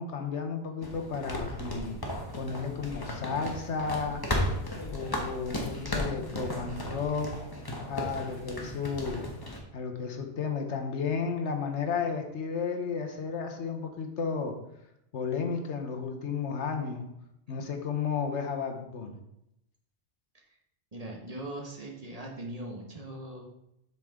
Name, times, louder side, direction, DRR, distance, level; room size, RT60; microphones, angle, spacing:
voice 1, 0.0-2.0 2.4-4.2 4.9-7.3 7.9-9.3 9.7-14.5 15.1-17.1 17.5-19.2, left 5 dB, 80° left, 4 dB, 1.3 m, -33 dB
sound 1, 0.8-9.6, left 1 dB, 20° left, 1.0 m, -35 dB
voice 2, 20.9-23.4, right 1 dB, 35° right, 0 dB, 1.3 m, -40 dB
7.7 x 6.0 x 3.6 m, 0.82 s
omnidirectional pair, 1.2 m